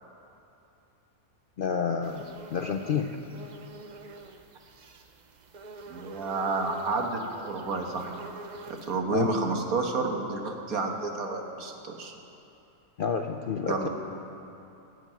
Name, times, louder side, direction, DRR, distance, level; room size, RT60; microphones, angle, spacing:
voice 1, 1.6-3.1 9.1-9.3 13.0-13.9, left 6 dB, 65° left, 5 dB, 0.5 m, -29 dB
sound 1, 2.0-9.0, right 3 dB, 45° right, 0.6 m, -46 dB
voice 2, 5.9-8.1 8.7-12.1 13.7-13.9, right 3 dB, 80° right, 3 dB, 1.8 m, -30 dB
14.0 x 8.3 x 9.1 m, 2.8 s
omnidirectional pair, 1.5 m